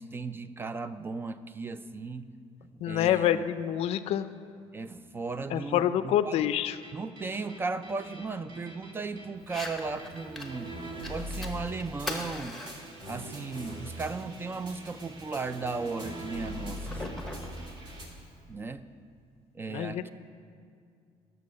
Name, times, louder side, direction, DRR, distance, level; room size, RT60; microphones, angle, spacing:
voice 1, 0.0-2.3 2.6-3.4 4.7-6.5 6.9-10.8 11.1-12.6 13.1-17.2 18.5-18.9 19.5-20.1, right 4 dB, 20° right, 12 dB, 0.3 m, -36 dB
voice 2, 2.8-4.3 5.5-6.8 19.7-20.1, left 11 dB, 60° left, 12 dB, 0.4 m, -27 dB
sound 1, 6.7-18.1, right 1 dB, 40° right, 1.9 m, -42 dB
Fire, 9.4-18.4, left 1 dB, ahead, 1.0 m, -43 dB
10.5 x 6.8 x 6.4 m, 2.2 s
cardioid pair, 135°, 12 cm